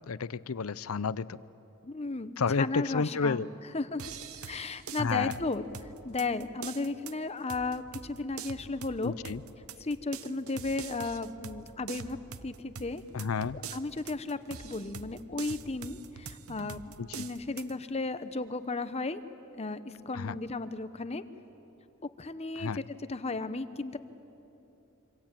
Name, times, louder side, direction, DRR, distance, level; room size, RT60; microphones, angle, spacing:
voice 1, 0.1-1.4 2.4-3.5 5.0-5.3 9.0-9.4 13.1-13.6 17.0-17.3 20.1-20.4 22.6-22.8, left 5 dB, 80° left, 18 dB, 0.6 m, -31 dB
voice 2, 1.8-3.4 3.7-4.0 4.5-9.1 9.8-13.0 13.7-16.8 17.2-19.2 19.6-21.2 22.2-24.0, left 3 dB, 30° left, 11 dB, 1.0 m, -35 dB
sound 1, 4.0-17.7, right 6 dB, 85° right, 1.0 m, -45 dB
26.0 x 25.0 x 9.1 m, 3.0 s
head